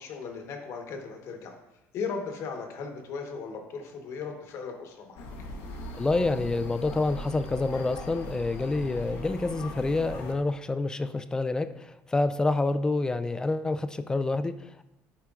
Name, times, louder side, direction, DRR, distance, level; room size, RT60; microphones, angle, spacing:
voice 1, 0.0-1.5 1.9-5.2, left 5 dB, 60° left, 4 dB, 1.1 m, -37 dB
sound 1, 5.2-10.3, left 1 dB, 90° left, 1.0 m, -40 dB
voice 2, 6.0-14.8, left 2 dB, 15° left, 11 dB, 0.3 m, -28 dB
11.0 x 4.4 x 2.4 m, 0.91 s
cardioid pair, 125°, 6 cm